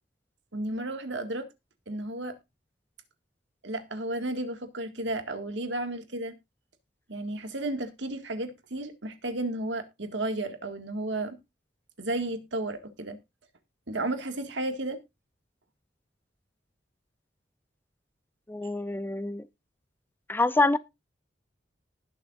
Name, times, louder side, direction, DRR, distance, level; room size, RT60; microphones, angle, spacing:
voice 1, 0.5-1.5 1.9-2.4 3.6-6.4 7.1-11.4 12.0-13.2 13.9-15.0, right 2 dB, 80° right, 2.0 m, -33 dB
voice 2, 18.5-19.5 20.3-20.8, left 2 dB, 10° left, 0.5 m, -26 dB
19.5 x 6.8 x 2.5 m
head